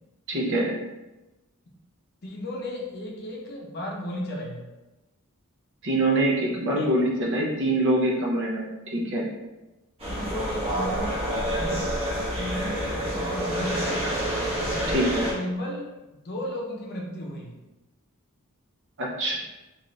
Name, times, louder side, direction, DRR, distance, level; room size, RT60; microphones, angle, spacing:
voice 1, 0.3-0.8 5.8-9.3 14.9-15.2 19.0-19.4, right 1 dB, 60° right, -2 dB, 0.6 m, -24 dB
voice 2, 2.2-4.7 6.8-6.9 10.1-11.2 11.5-11.9 12.4-14.1 14.7-15.0 15.3-15.8 16.1-17.5, left 1 dB, 50° left, -1 dB, 0.6 m, -34 dB
sound 1, 10.0-15.3, equal, 30° right, 0.9 m, -28 dB
2.5 x 2.4 x 3.1 m, 1.0 s
head